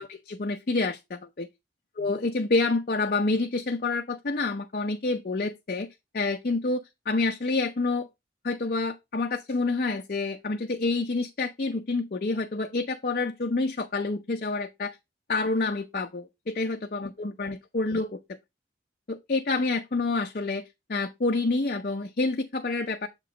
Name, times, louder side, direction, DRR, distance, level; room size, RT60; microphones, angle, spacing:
voice 1, 0.0-1.5 2.0-5.9 6.1-8.1 8.4-15.0 15.3-18.2 19.1-23.1, left 3 dB, 50° left, 0.6 m, -28 dB
7.7 x 3.0 x 5.0 m
head